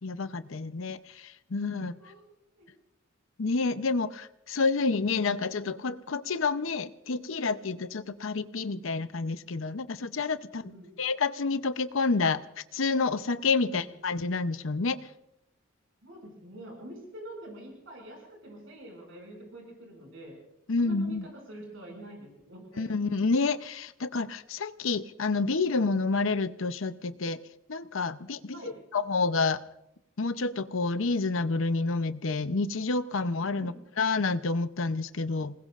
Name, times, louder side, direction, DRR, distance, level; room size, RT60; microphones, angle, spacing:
voice 1, 0.0-1.9 3.4-10.7 11.0-12.4 12.7-15.0 20.7-21.3 22.8-27.4 27.7-29.6 30.2-35.5, left 4 dB, 70° left, 12 dB, 0.7 m, -29 dB
voice 2, 1.9-2.2 2.6-2.7 10.5-10.9 13.6-13.8 16.0-20.4 20.8-22.9 28.5-28.8 33.5-33.8, right 1 dB, 65° right, 0 dB, 6.4 m, -46 dB
29.0 x 20.0 x 2.5 m, 0.83 s
head